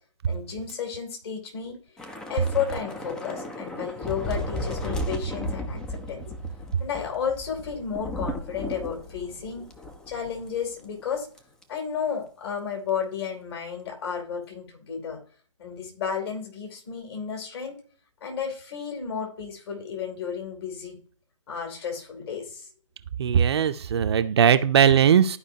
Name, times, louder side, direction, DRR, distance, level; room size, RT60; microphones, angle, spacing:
voice 1, 0.3-1.8 2.3-9.7 10.1-11.3 11.7-15.2 15.6-17.7 18.2-21.0 21.5-22.7, left 7 dB, 45° left, 2 dB, 2.9 m, -32 dB
Thunder / Rain, 2.0-10.6 10.8-11.0 11.4-11.6, equal, 5° left, 0.3 m, -35 dB
voice 2, 23.2-25.4, right 8 dB, 50° right, 10 dB, 0.5 m, -19 dB
12.5 x 4.9 x 2.7 m, 0.43 s
figure-of-eight pair, 140°, 17 cm